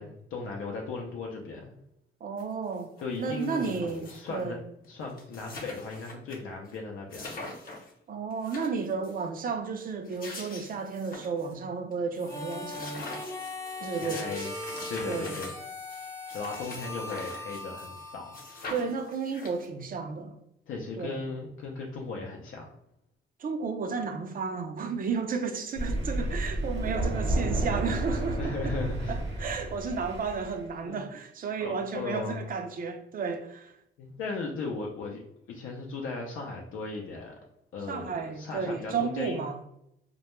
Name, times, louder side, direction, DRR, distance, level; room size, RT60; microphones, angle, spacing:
voice 1, 0.0-1.8 3.0-4.6 4.9-7.6 14.0-14.5 14.9-15.5 16.3-18.4 20.7-22.7 28.4-29.2 30.8-31.0 31.6-32.4 34.0-35.2 35.5-37.4 37.7-39.4, left 3 dB, 75° left, 0.4 m, -37 dB
voice 2, 2.2-2.9 3.2-4.6 8.1-13.1 13.8-14.3 15.0-15.4 18.7-20.4 21.0-21.2 23.4-28.7 29.1-33.7 37.9-39.7, right 5 dB, 45° right, 0.4 m, -33 dB
sound 1, 2.4-2.5 2.7-4.4 4.8-4.9 5.1-6.4 6.7-6.8 7.1-7.9 8.3-9.2 9.9-11.5 11.9-12.0 12.3-18.0 18.3-19.8, left 2 dB, 45° left, 0.8 m, -44 dB
Harmonica, 12.1-19.1, left 2 dB, 15° left, 0.5 m, -40 dB
Thunder, 25.8-30.6, right 1 dB, 60° right, 0.8 m, -31 dB
2.2 x 2.1 x 3.0 m
cardioid pair, 100°, 21 cm